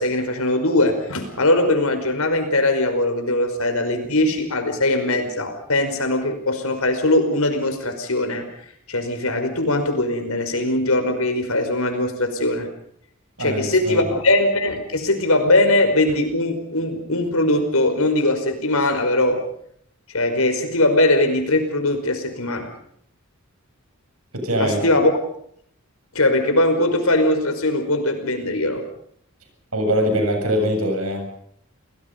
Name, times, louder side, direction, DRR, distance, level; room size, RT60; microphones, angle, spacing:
voice 1, 0.0-8.5 8.9-12.7 13.4-19.4 20.1-22.7 24.6-25.1 26.1-28.8, left 2 dB, 80° left, 7 dB, 5.4 m, -20 dB
voice 2, 13.4-14.0 24.3-24.8 29.7-31.4, equal, 90° right, 5 dB, 7.5 m, -22 dB
29.5 x 20.0 x 5.4 m, 0.66 s
head